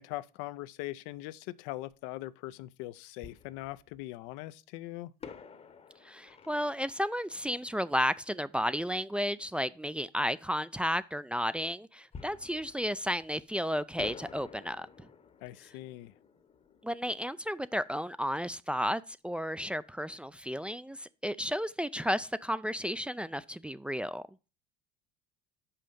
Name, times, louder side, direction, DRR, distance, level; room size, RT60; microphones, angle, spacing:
voice 1, 0.0-5.1 15.4-16.1, left 17 dB, 65° left, 0.5 m, -41 dB
Fireworks, 1.9-2.0 3.2-4.3 5.2-8.7 12.1-13.6 14.0-18.5 18.8-18.9 19.4-19.6, left 6 dB, 30° left, 0.9 m, -51 dB
voice 2, 6.0-15.1 16.8-24.2, equal, 5° right, 0.3 m, -33 dB
5.8 x 5.1 x 6.7 m
hypercardioid pair, 75°, 20 cm